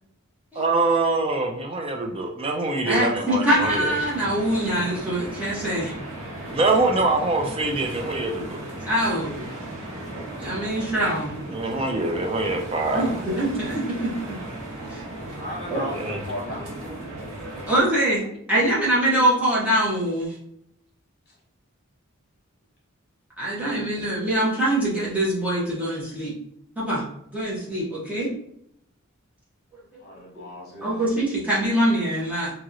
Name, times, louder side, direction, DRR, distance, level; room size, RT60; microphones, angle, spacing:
voice 1, 0.6-3.9 6.5-8.6 11.5-13.1 15.9-16.2, right 2 dB, 25° right, 2 dB, 0.3 m, -24 dB
voice 2, 2.8-5.9 8.4-8.5 8.9-9.5 10.4-11.3 12.9-14.4 14.9-15.0 15.7-15.9 17.5-18.2 18.5-20.3 23.4-26.3 26.8-27.0 27.3-28.3 30.8-32.5, right 1 dB, 5° right, -8 dB, 0.9 m, -24 dB
sound 1, 3.5-17.8, right 1 dB, 85° right, 1.1 m, -36 dB
voice 3, 15.4-16.6 30.0-31.1, left 1 dB, 45° left, -2 dB, 1.1 m, -35 dB
2.9 x 2.8 x 2.5 m, 0.72 s
head